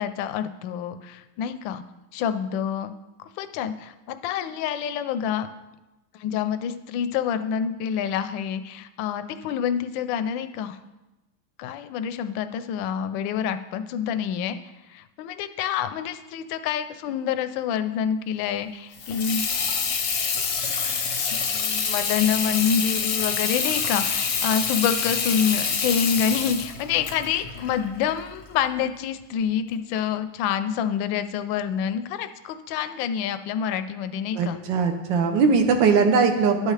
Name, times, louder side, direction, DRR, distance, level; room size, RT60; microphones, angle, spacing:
voice 1, 0.0-1.8 2.1-2.9 3.2-5.5 6.1-10.8 11.6-14.6 14.9-19.4 21.3-34.6, left 8 dB, 75° left, 10 dB, 1.2 m, -27 dB
Water tap faucet / Sink (filling or washing), 18.9-28.5, left 5 dB, 60° left, 0.8 m, -27 dB
voice 2, 34.3-36.7, right 5 dB, 70° right, 5 dB, 1.4 m, -20 dB
11.5 x 6.4 x 3.2 m, 1.0 s
omnidirectional pair, 2.3 m